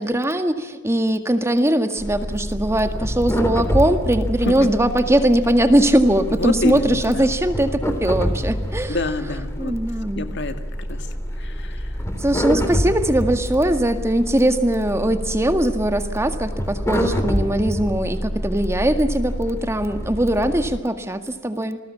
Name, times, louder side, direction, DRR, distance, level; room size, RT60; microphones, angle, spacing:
voice 1, 0.0-9.0 9.6-10.3 12.2-21.8, right 1 dB, 15° right, 7 dB, 1.8 m, -20 dB
sound 1, 2.0-20.8, equal, 15° left, 3.3 m, -27 dB
voice 2, 6.3-7.3 8.9-9.7 10.1-11.1 11.4-11.9, left 2 dB, 65° left, 8 dB, 2.1 m, -27 dB
28.5 x 20.5 x 7.4 m, 1.2 s
head